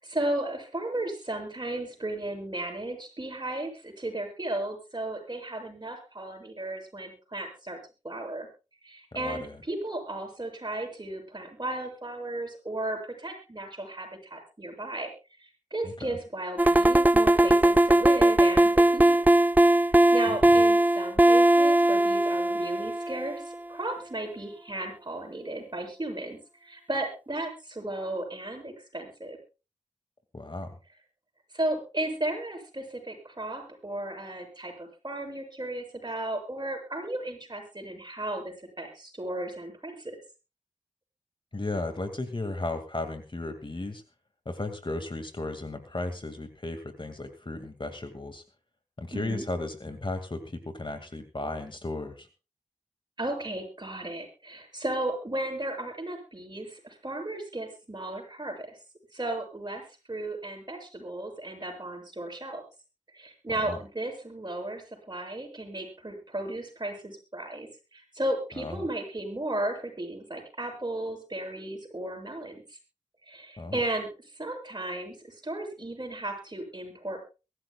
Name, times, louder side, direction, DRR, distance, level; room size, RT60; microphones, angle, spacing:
voice 1, 0.0-7.8 8.0-8.5 8.8-15.1 15.4-19.2 19.7-29.4 31.5-40.1 49.1-49.4 53.2-58.8 59.1-59.8 60.1-62.6 63.1-72.8 73.3-77.2, right 1 dB, 30° right, 2 dB, 7.6 m, -35 dB
voice 2, 9.1-9.6 15.8-16.2 20.3-20.4 30.3-30.8 41.5-44.0 44.5-48.4 49.0-52.3 63.6-63.8 68.5-68.9 73.6-73.8, left 2 dB, 40° left, 7 dB, 2.2 m, -35 dB
sound 1, 16.6-23.5, right 1 dB, 10° right, 0.6 m, -20 dB
23.0 x 13.5 x 2.4 m, 0.32 s
wide cardioid pair, 60°, 13 cm